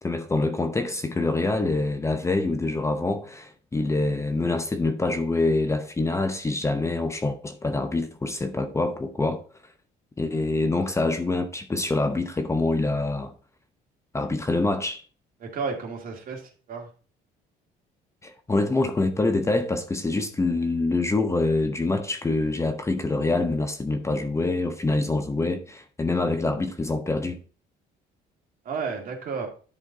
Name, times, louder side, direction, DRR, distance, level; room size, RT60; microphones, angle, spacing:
voice 1, 0.0-9.4 10.2-13.3 14.1-15.0 18.2-27.4, left 2 dB, 15° left, 0.8 m, -25 dB
voice 2, 15.4-16.4 16.7-16.9 28.7-29.5, right 5 dB, 55° right, 2.3 m, -31 dB
10.0 x 4.2 x 3.9 m
cardioid pair, 110°, 17 cm